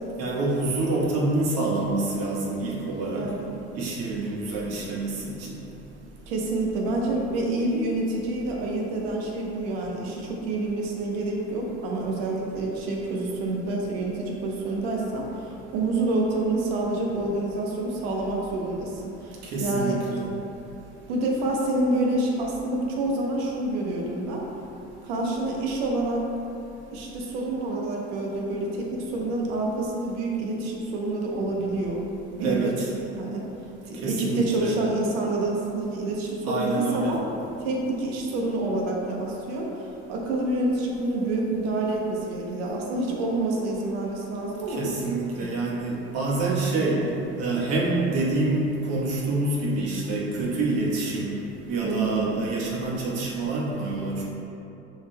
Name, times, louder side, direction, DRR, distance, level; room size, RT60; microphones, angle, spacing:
voice 1, 0.2-3.3 3.7-5.6 19.4-20.3 32.4-32.9 34.0-34.7 36.5-37.2 44.7-47.0 47.4-51.3 51.7-54.2, right 2 dB, 60° right, -4 dB, 1.1 m, -27 dB
voice 2, 3.1-3.5 6.3-20.0 21.1-24.4 25.0-26.3 26.9-32.0 32.3-32.9 33.1-33.4 33.8-37.2 37.6-44.8 45.4-45.5 51.8-52.4, right 2 dB, 85° right, -1 dB, 0.8 m, -28 dB
6.3 x 3.6 x 2.2 m, 2.9 s
supercardioid pair, 100°, 30 cm